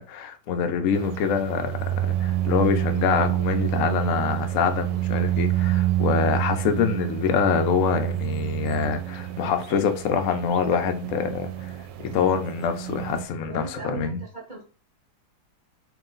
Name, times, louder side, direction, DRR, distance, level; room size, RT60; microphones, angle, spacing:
voice 1, 0.0-11.7 12.0-14.2, left 7 dB, 75° left, 0.7 m, -25 dB
sound 1, 0.9-13.2, right 13 dB, 75° right, 1.2 m, -28 dB
voice 2, 13.5-14.6, right 4 dB, 30° right, 1.0 m, -37 dB
3.0 x 3.0 x 3.8 m
omnidirectional pair, 2.0 m